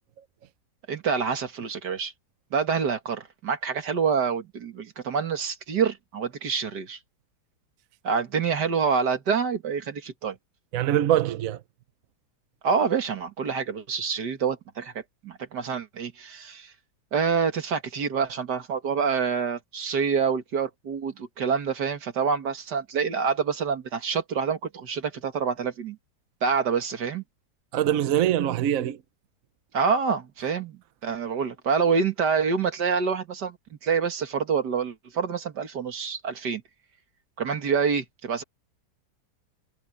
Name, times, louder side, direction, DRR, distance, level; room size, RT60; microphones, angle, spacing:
voice 1, 0.9-2.1 2.5-7.0 8.0-10.4 12.6-16.7 17.1-26.0 26.4-27.2 29.7-36.6 37.4-38.4, right 6 dB, 80° right, 2.4 m, -27 dB
voice 2, 10.7-11.6 27.7-29.0, right 11 dB, 65° right, 1.0 m, -23 dB
omnidirectional pair, 1.8 m